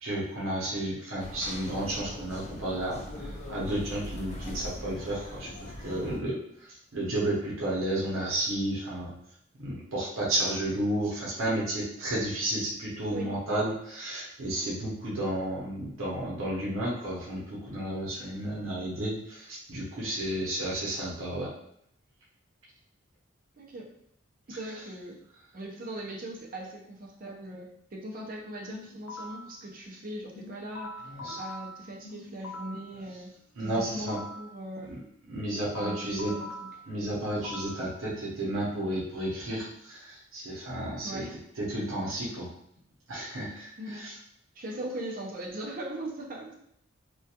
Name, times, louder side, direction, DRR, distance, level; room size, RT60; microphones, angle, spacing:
voice 1, 0.0-9.1 9.6-21.5 31.1-31.4 33.6-34.2 34.8-35.0 35.3-36.3 36.9-41.2 41.6-42.5 43.1-44.1, right 1 dB, 85° right, -5 dB, 0.7 m, -32 dB
sound 1, 1.2-6.2, left 1 dB, 30° left, 0.4 m, -41 dB
voice 2, 23.6-23.9 24.5-25.2 25.5-33.3 33.6-34.9 35.8-36.7 41.0-41.4 43.8-44.0 44.6-46.5, right 1 dB, 45° right, -2 dB, 0.5 m, -39 dB
sound 2, 28.7-29.5 30.4-32.9 33.7-34.5 35.4-37.9, left 1 dB, 90° left, 0.4 m, -42 dB
2.3 x 2.2 x 2.7 m, 0.72 s
head